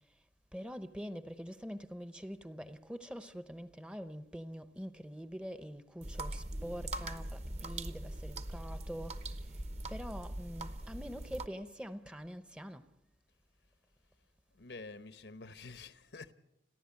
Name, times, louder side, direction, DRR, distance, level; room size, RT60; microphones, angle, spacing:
voice 1, 0.5-9.3 9.9-12.8, equal, 5° right, 0.7 m, -45 dB
sound 1, 6.0-11.5, right 1 dB, 40° right, 1.0 m, -41 dB
voice 2, 14.5-16.3, left 3 dB, 75° left, 1.0 m, -48 dB
30.0 x 11.0 x 8.6 m
head